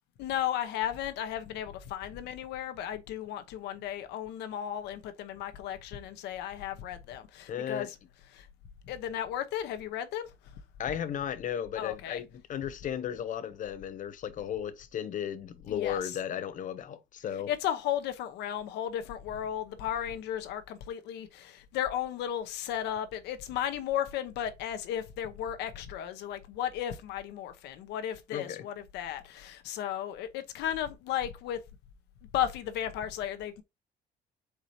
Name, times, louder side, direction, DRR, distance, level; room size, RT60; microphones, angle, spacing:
voice 1, 0.2-8.0 8.3-8.5 8.9-10.3 11.8-12.2 15.7-16.0 17.5-31.6 32.3-33.6, left 10 dB, 85° left, 0.9 m, -34 dB
voice 2, 7.5-7.9 10.8-17.5 28.3-28.7, left 9 dB, 50° left, 0.8 m, -35 dB
4.8 x 4.1 x 2.7 m
cardioid pair, 110°, 17 cm